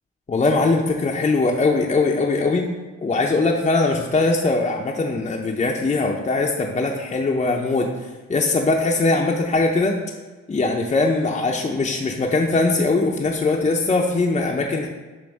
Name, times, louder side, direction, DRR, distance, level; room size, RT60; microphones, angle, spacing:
voice 1, 0.3-2.7 3.0-7.9 8.3-10.0 10.5-14.9, left 3 dB, 20° left, 0 dB, 0.6 m, -21 dB
7.0 x 2.6 x 5.2 m, 1.3 s
cardioid pair, 90°, 30 cm